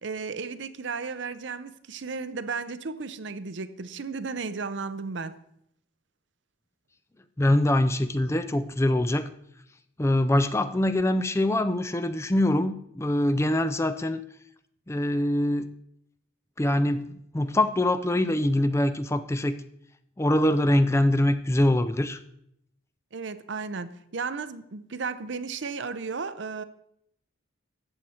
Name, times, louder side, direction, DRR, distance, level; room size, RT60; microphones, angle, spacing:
voice 1, 0.0-5.4 23.1-26.6, right 4 dB, 60° right, 0.6 m, -34 dB
voice 2, 7.4-9.3 10.0-14.2 14.9-15.7 16.6-17.1 17.3-19.6 20.2-22.2, left 1 dB, 15° left, 0.4 m, -23 dB
13.5 x 8.3 x 4.3 m
head